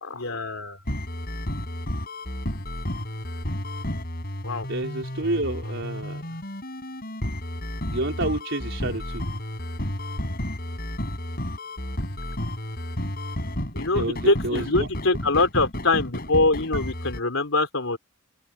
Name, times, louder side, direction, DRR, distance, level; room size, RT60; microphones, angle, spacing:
voice 1, 0.0-0.8 4.4-4.7 13.7-18.0, left 3 dB, 80° left, 3.8 m, -24 dB
sound 1, 0.9-17.2, left 1 dB, 45° left, 7.9 m, -32 dB
voice 2, 4.7-6.2 7.9-9.2 13.9-14.9, right 2 dB, 60° right, 4.3 m, -29 dB
open air
head